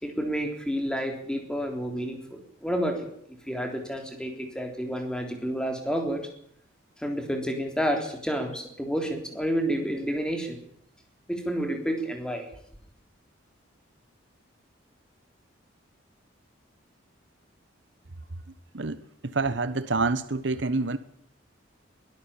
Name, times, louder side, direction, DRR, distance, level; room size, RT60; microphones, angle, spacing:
voice 1, 0.0-3.1 3.5-6.3 7.0-10.6 11.3-12.5, equal, 5° left, 3.6 m, -30 dB
voice 2, 18.7-21.0, right 3 dB, 65° right, 1.2 m, -27 dB
23.0 x 13.5 x 8.6 m
head